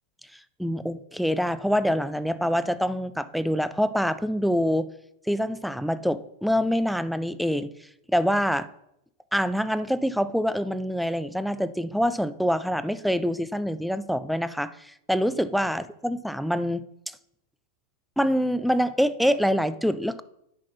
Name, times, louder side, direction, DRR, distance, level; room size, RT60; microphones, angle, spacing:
voice 1, 0.6-4.9 5.3-7.7 8.1-8.7 9.3-16.8 18.2-20.2, equal, ahead, 14 dB, 0.5 m, -25 dB
10.5 x 6.0 x 4.2 m, 0.80 s
figure-of-eight pair, 90°, 0 cm